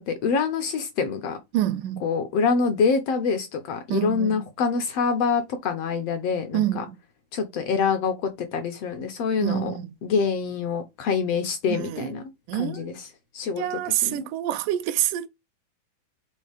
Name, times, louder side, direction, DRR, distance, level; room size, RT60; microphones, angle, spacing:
voice 1, 0.0-1.4 2.0-6.8 7.3-9.7 10.0-12.2 12.5-13.1 13.3-14.3, left 5 dB, 70° left, 1.6 m, -26 dB
voice 2, 1.5-2.0 3.9-4.4 6.5-6.9 9.4-9.9 11.7-12.1 12.5-13.0 13.6-15.3, right 13 dB, 80° right, 2.1 m, -27 dB
5.5 x 3.9 x 5.0 m
omnidirectional pair, 3.8 m